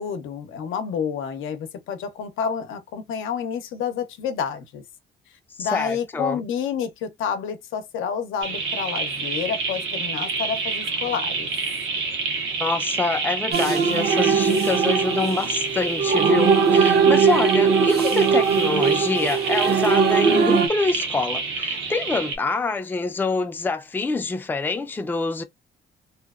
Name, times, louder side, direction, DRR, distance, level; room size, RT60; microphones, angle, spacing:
voice 1, 0.0-4.8 5.6-11.5, left 7 dB, 85° left, 0.6 m, -29 dB
voice 2, 5.6-6.4 12.6-25.4, left 3 dB, 10° left, 0.3 m, -26 dB
sound 1, 8.4-22.4, right 4 dB, 85° right, 0.9 m, -28 dB
sound 2, 13.5-20.7, right 5 dB, 55° right, 0.6 m, -20 dB
2.8 x 2.0 x 2.3 m
cardioid pair, 90°, 20 cm